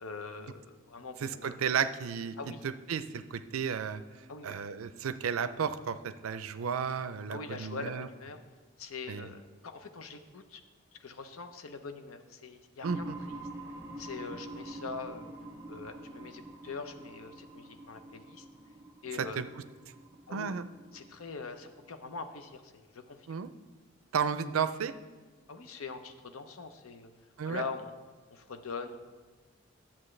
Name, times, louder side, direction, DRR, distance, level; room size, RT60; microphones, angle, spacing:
voice 1, 0.0-1.6 2.4-2.6 4.3-4.6 7.3-8.4 8.8-10.6 11.0-13.4 14.0-15.3 15.7-18.5 19.0-19.5 20.3-20.6 20.9-23.3 25.5-27.1 27.4-27.9 28.3-29.0, left 4 dB, 85° left, 8 dB, 0.7 m, -43 dB
voice 2, 1.2-2.4 2.6-4.0 4.4-8.1 9.1-9.3 12.8-13.2 19.4-19.5 20.3-20.7 23.3-23.5 24.1-24.9 27.4-27.6, right 6 dB, 85° right, 12 dB, 0.4 m, -33 dB
sound 1, 12.8-22.4, right 1 dB, 10° right, 0.7 m, -46 dB
11.0 x 7.3 x 3.2 m, 1.4 s
head